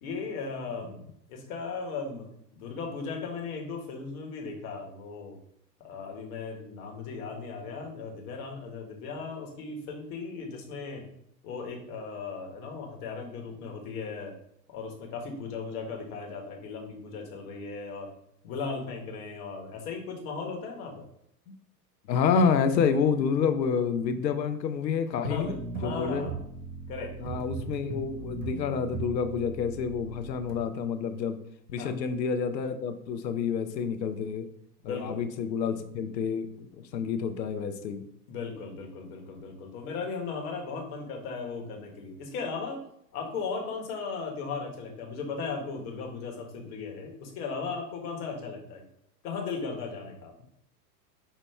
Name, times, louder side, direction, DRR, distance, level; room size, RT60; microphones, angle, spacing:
voice 1, 0.0-2.3 2.5-5.4 5.8-11.1 11.4-14.3 14.7-18.1 18.4-21.1 25.2-26.4 26.9-27.1 31.8-31.9 34.8-35.2 38.3-42.8 43.1-48.8 49.2-50.3, left 4 dB, 55° left, 1 dB, 1.4 m, -37 dB
voice 2, 22.1-25.5 25.8-26.3 27.2-31.4 31.7-34.4 34.8-38.0, left 6 dB, 80° left, 9 dB, 0.7 m, -28 dB
sound 1, 25.2-30.6, right 4 dB, 30° right, 0.8 m, -38 dB
5.5 x 2.9 x 3.3 m, 0.73 s
hypercardioid pair, 105°, 50 cm